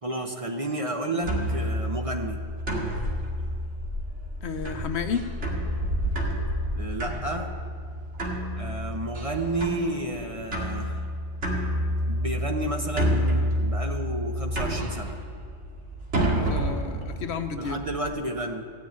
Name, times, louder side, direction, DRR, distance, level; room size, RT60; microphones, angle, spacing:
voice 1, 0.0-2.4 6.7-7.5 8.6-11.0 12.1-15.2 17.5-18.6, right 1 dB, 30° right, 3 dB, 0.8 m, -31 dB
sound 1, 1.2-18.1, equal, 65° right, 2.4 m, -29 dB
voice 2, 4.4-5.4 16.4-17.8, left 6 dB, 65° left, 9 dB, 0.9 m, -32 dB
16.0 x 6.8 x 9.3 m, 2.2 s
omnidirectional pair, 1.3 m